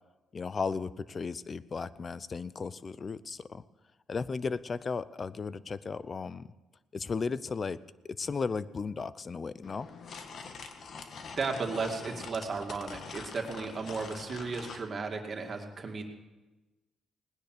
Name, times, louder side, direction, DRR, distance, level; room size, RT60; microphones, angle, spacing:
voice 1, 0.3-3.6 4.1-6.5 6.9-7.8 8.0-9.9, left 5 dB, 40° left, 17 dB, 0.6 m, -35 dB
sound 1, 9.6-14.9, left 5 dB, 55° left, 1.5 m, -45 dB
voice 2, 11.4-16.0, right 4 dB, 40° right, 3 dB, 2.4 m, -35 dB
19.0 x 10.0 x 6.7 m, 1.1 s
cardioid pair, 90°, 0 cm